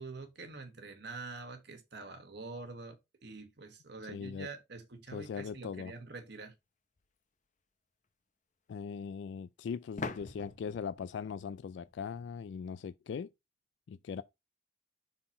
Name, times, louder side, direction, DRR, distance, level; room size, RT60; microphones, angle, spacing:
voice 1, 0.0-6.5, right 3 dB, 65° right, 1.4 m, -46 dB
voice 2, 4.0-4.5 5.1-5.9 8.7-13.3 13.9-14.2, left 6 dB, 70° left, 0.3 m, -40 dB
sound 1, 7.0-7.1 10.0-12.6, left 3 dB, 45° left, 0.8 m, -44 dB
5.8 x 4.2 x 4.3 m
head